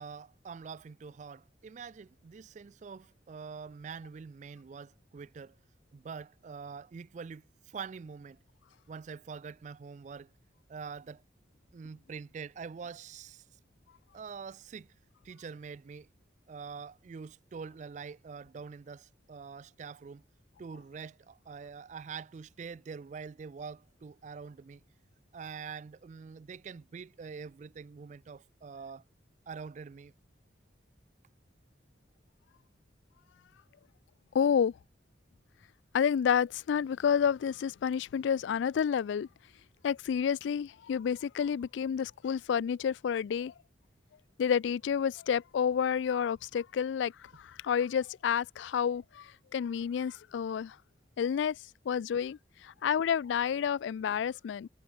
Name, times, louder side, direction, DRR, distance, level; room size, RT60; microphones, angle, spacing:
voice 1, 0.0-5.6 5.9-8.4 8.9-10.3 10.7-11.2 11.7-13.4 14.1-14.9 15.2-16.1 16.5-20.2 20.6-24.8 25.3-29.0 29.5-30.1, right 5 dB, 40° right, 0.3 m, -45 dB
voice 2, 34.3-34.7 35.9-39.3 39.8-43.5 44.4-50.8 51.2-51.6 51.9-54.7, left 7 dB, 75° left, 0.3 m, -30 dB
head